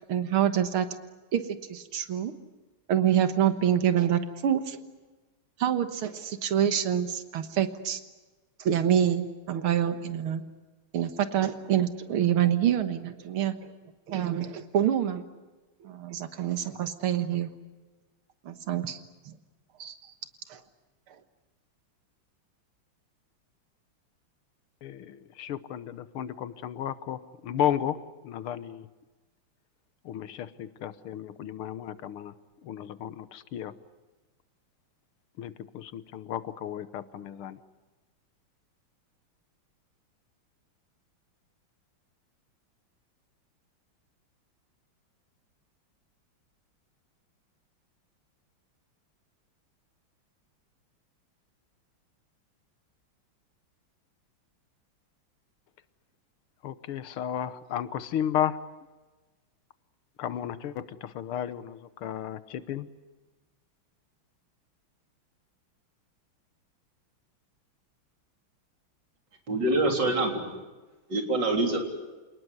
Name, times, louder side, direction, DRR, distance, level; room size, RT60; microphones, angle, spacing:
voice 1, 0.1-0.9 1.3-1.4 1.7-2.3 2.9-4.8 5.6-8.0 8.6-10.4 10.9-13.7 14.1-15.2 15.8-17.5 18.5-19.4 19.8-20.0 20.5-20.6, right 10 dB, 85° right, 9 dB, 2.2 m, -26 dB
voice 2, 24.8-28.0 28.2-28.9 30.0-32.3 32.6-33.7 35.4-37.6 56.6-58.6 60.2-62.9, left 10 dB, 85° left, 14 dB, 1.9 m, -33 dB
voice 3, 69.5-70.4 71.1-71.8, right 2 dB, 55° right, 2 dB, 4.3 m, -25 dB
28.5 x 19.5 x 9.6 m, 1.2 s
omnidirectional pair, 2.3 m